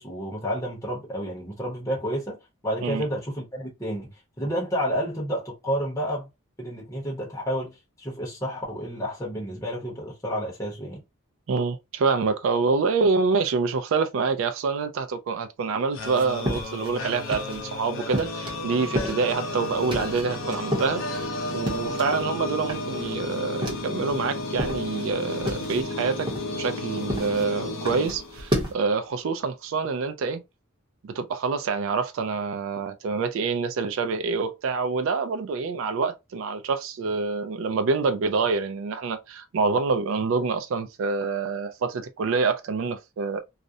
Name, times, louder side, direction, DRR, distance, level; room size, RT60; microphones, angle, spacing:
voice 1, 0.0-2.4 2.6-6.3 6.6-11.0, equal, 15° left, 0.7 m, -30 dB
voice 2, 11.5-21.0 21.5-26.3 26.5-30.4 31.0-43.4, right 4 dB, 65° right, 0.3 m, -26 dB
sound 1, 15.9-28.9, left 2 dB, 65° left, 0.6 m, -33 dB
sound 2, 16.0-17.7 18.1-22.3 22.6-24.2 24.5-28.7, equal, 20° right, 0.7 m, -33 dB
2.4 x 2.0 x 2.6 m
head